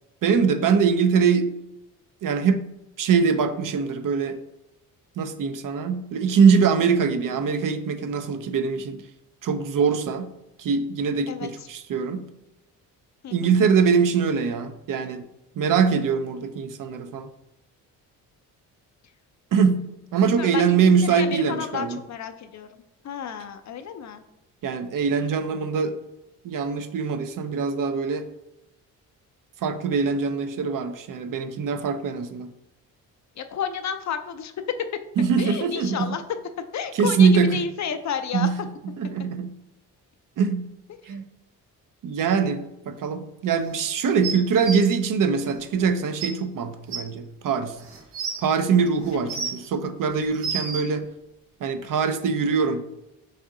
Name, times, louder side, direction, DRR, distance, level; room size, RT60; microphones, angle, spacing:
voice 1, 0.2-1.5 2.2-2.7 3.0-4.4 5.2-9.0 9.4-10.3 10.6-12.3 13.3-15.2 15.6-17.3 19.5-19.8 20.1-22.0 24.6-26.0 26.4-28.3 29.6-32.5 35.2-36.2 36.9-37.6 38.3-38.6 39.0-39.5 40.4-40.7 41.1-41.2 42.0-47.8 48.4-51.1 51.6-52.8, right 6 dB, 50° right, 9 dB, 0.5 m, -23 dB
voice 2, 11.3-11.7 13.2-13.6 20.2-22.7 23.0-24.2 33.4-34.5 35.4-36.2 36.7-38.5 40.9-41.2 49.1-49.3, left 7 dB, 45° left, 8 dB, 0.5 m, -32 dB
sound 1, 44.2-44.8 45.8-45.9 46.2-46.3 46.9-47.0 47.8-48.4 49.1-49.7 50.2-50.8 51.8-51.9, right 5 dB, 85° right, 0.8 m, -30 dB
4.2 x 2.6 x 3.7 m, 0.90 s
supercardioid pair, 55°, 41 cm